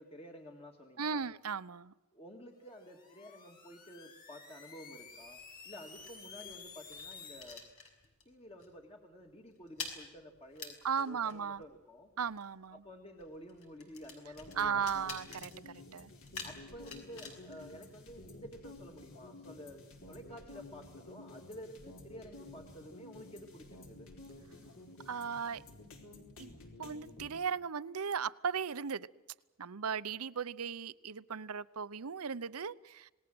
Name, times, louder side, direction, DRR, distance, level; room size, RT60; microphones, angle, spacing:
voice 1, 0.0-1.3 2.1-5.4 5.6-7.6 8.3-12.1 12.7-15.1 16.4-19.8 20.1-24.1, equal, 25° left, 3 dB, 2.1 m, -51 dB
voice 2, 1.0-1.9 10.8-11.6 12.2-12.8 14.6-16.1 25.1-25.6 26.4-26.5 26.8-29.1 29.6-33.1, right 6 dB, 80° right, 16 dB, 0.8 m, -36 dB
sound 1, 2.6-7.5, left 5 dB, 45° left, 6.5 m, -52 dB
sound 2, 5.0-8.3 8.6-8.9 9.1-18.5, left 4 dB, 85° left, 6.0 m, -50 dB
sound 3, 14.4-27.3, left 2 dB, 65° left, 4.6 m, -52 dB
27.5 x 19.5 x 7.8 m, 1.1 s
head